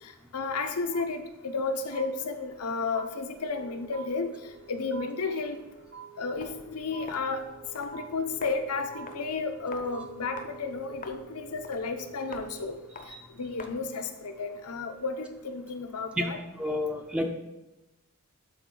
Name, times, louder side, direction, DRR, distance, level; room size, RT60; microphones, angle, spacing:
voice 1, 0.0-5.6 6.2-7.4 7.7-12.8 13.3-16.4, left 4 dB, 85° left, 7 dB, 0.8 m, -32 dB
sound 1, 0.9-1.6 1.9-2.7 2.9-3.7 3.9-4.7 4.9-5.7 5.9-6.7 6.9-7.7 7.9-8.7 8.9-9.7 9.9-10.7, right 7 dB, 55° right, 0.6 m, -47 dB
Wind instrument woodwind instrument, 3.2-13.0, right 14 dB, 80° right, 2.9 m, -51 dB
Walk footsteps, 6.3-14.0, left 3 dB, 35° left, 0.6 m, -48 dB
voice 2, 16.6-17.3, left 1 dB, 5° right, 3 dB, 0.4 m, -30 dB
12.0 x 4.3 x 3.8 m, 1.0 s
head